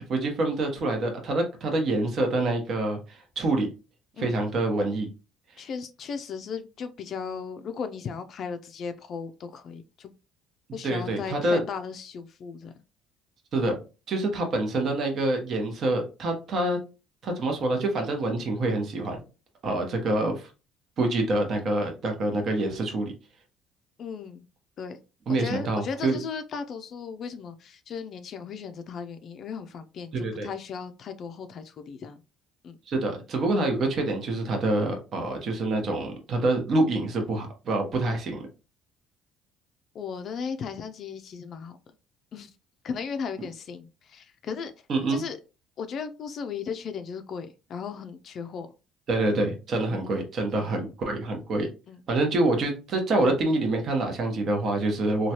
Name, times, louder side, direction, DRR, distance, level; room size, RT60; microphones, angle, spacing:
voice 1, 0.1-3.7 4.2-5.1 10.8-11.6 13.5-13.7 14.1-16.8 17.2-19.2 19.6-20.5 21.0-23.1 25.3-26.2 30.1-30.5 32.9-38.5 44.9-45.2 49.1-51.7 52.1-55.3, right 2 dB, 50° right, 0.8 m, -26 dB
voice 2, 5.6-10.1 10.7-12.7 24.0-24.4 24.8-25.0 25.3-32.2 32.6-32.8 39.9-41.8 42.3-42.5 42.8-44.7 45.1-45.4 45.8-48.7 49.9-50.0 50.6-50.7 51.9-52.0, left 6 dB, 55° left, 0.3 m, -36 dB
3.0 x 2.3 x 2.8 m
supercardioid pair, 90°, 0 cm